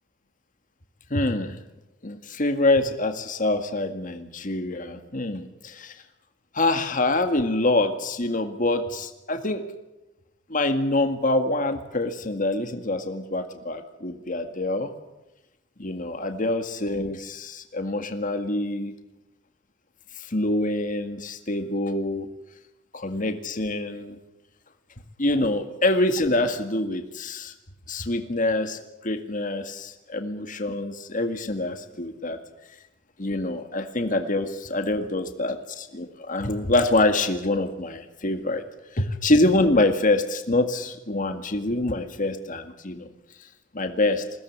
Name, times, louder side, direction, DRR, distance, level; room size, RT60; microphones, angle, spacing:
voice 1, 1.1-1.5 2.0-5.9 6.5-9.6 10.5-14.9 15.8-18.9 20.2-22.3 22.9-24.2 25.2-27.5 27.9-32.4 33.2-38.6 38.9-43.1 43.7-44.2, left 2 dB, 45° left, 7 dB, 2.0 m, -25 dB
22.0 x 17.0 x 9.5 m, 0.96 s
head